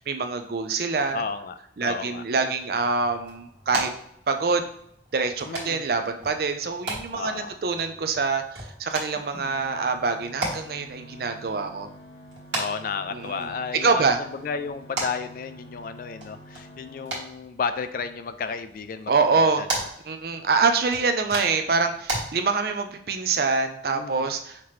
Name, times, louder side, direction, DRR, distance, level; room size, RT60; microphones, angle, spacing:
voice 1, 0.0-1.2 1.8-3.9 4.3-4.6 5.1-11.9 13.1-13.5 13.8-14.2 19.1-19.7 20.1-24.6, right 4 dB, 55° right, 7 dB, 0.5 m, -25 dB
voice 2, 1.1-1.5 1.8-2.2 5.5-5.8 7.1-7.6 12.5-19.1 19.6-19.7 23.9-24.3, left 5 dB, 50° left, 11 dB, 0.3 m, -32 dB
sound 1, 2.4-22.2, right 1 dB, 85° right, 1.7 m, -37 dB
sound 2, 9.1-17.1, equal, 85° left, 1.8 m, -47 dB
5.8 x 2.9 x 3.1 m, 0.74 s
head